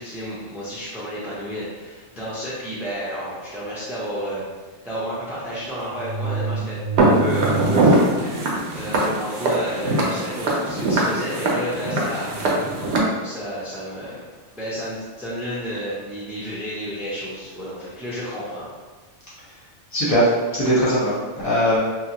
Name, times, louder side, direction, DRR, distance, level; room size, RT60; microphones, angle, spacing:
voice 1, 0.0-4.4 4.8-8.2 8.7-12.4 13.2-14.2 14.5-18.7, equal, ahead, -8 dB, 0.3 m, -31 dB
sound 1, 2.2-2.4 3.2-3.3 3.6-3.7 5.0-5.1 5.8-8.0 8.5-8.6 9.4-9.5 9.9-10.2 10.9-11.0 12.3-13.1 14.1-14.3, right 5 dB, 65° left, 0.7 m, -30 dB
Walk footsteps, 7.0-13.0, right 2 dB, 70° right, 0.8 m, -21 dB
voice 2, 19.9-21.8, equal, 15° left, -9 dB, 0.9 m, -20 dB
2.8 x 2.2 x 2.9 m, 1.4 s
omnidirectional pair, 1.2 m